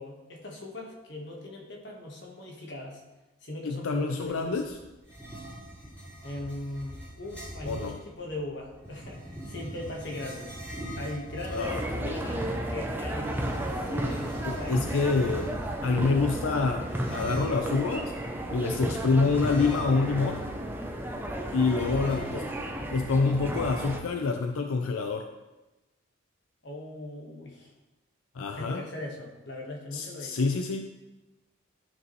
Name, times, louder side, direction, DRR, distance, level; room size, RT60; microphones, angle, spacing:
voice 1, 0.0-3.0 3.4-4.7 6.2-15.1 21.8-22.5 26.6-27.7 28.5-30.4, left 1 dB, 55° left, -1 dB, 1.5 m, -40 dB
voice 2, 3.6-4.6 7.7-8.0 11.5-12.1 14.4-15.5 15.8-18.1 18.5-20.4 21.5-22.4 22.9-25.3 28.4-28.8 29.9-30.9, left 4 dB, 85° left, 5 dB, 0.5 m, -27 dB
sound 1, 4.2-16.5 17.0-17.1, equal, 35° left, 2.9 m, -58 dB
sound 2, 5.0-8.0 8.8-12.0 13.1-15.8 16.9-17.7 19.3-20.3 20.6-20.7 21.7-22.5, right 1 dB, 5° left, 2.6 m, -41 dB
sound 3, 11.6-24.0, right 1 dB, 10° right, 0.5 m, -33 dB
12.0 x 5.2 x 3.2 m, 1.1 s
head